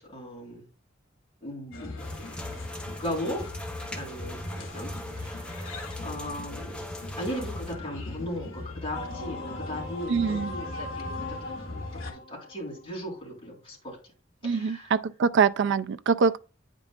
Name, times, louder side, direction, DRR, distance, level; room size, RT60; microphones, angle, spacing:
voice 1, 0.1-0.6 1.4-2.2 2.9-3.5 3.9-6.8 7.2-14.0 14.4-14.9, equal, 25° left, 3.9 m, -37 dB
sound 1, 1.7-12.1, left 2 dB, 80° left, 1.4 m, -39 dB
sound 2, 2.0-7.7, left 1 dB, 5° left, 0.8 m, -42 dB
sound 3, 8.9-13.2, left 2 dB, 55° left, 1.7 m, -39 dB
voice 2, 10.1-10.5 14.4-16.4, right 5 dB, 60° right, 0.4 m, -24 dB
9.1 x 5.3 x 2.4 m
head